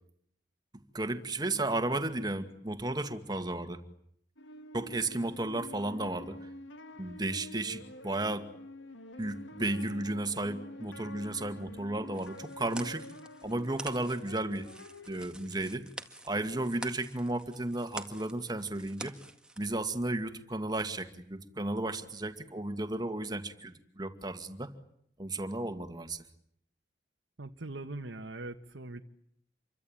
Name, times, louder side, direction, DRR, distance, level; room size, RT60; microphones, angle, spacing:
voice 1, 0.9-3.8 4.7-6.5 7.0-8.5 9.2-13.1 13.4-14.7 15.1-15.8 16.2-19.2 19.6-24.7 25.2-26.2, right 2 dB, 20° right, 9 dB, 2.1 m, -34 dB
sound 1, 4.4-15.2, left 1 dB, 80° left, 2.1 m, -48 dB
sound 2, 12.1-19.7, right 2 dB, 5° right, 1.9 m, -47 dB
voice 2, 27.4-29.0, right 2 dB, 80° right, 5 dB, 1.4 m, -41 dB
27.5 x 24.0 x 9.0 m, 0.71 s
head